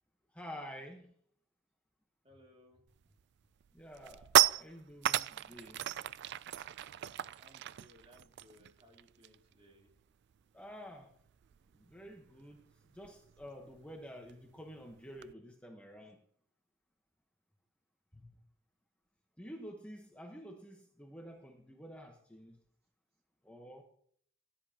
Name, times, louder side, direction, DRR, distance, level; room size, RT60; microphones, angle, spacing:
voice 1, 0.3-1.1 3.7-5.8 10.5-11.1 11.9-12.6 12.9-16.2 18.1-18.3 19.4-22.5 23.4-23.8, equal, 5° left, 1 dB, 1.1 m, -49 dB
voice 2, 2.2-2.8 7.4-9.9, left 1 dB, 30° right, 1 dB, 2.4 m, -62 dB
sound 1, 3.0-3.2 3.6-9.5 9.8-10.0 10.3-15.3, right 12 dB, 55° right, 0.3 m, -35 dB
16.5 x 10.5 x 2.9 m, 0.64 s
head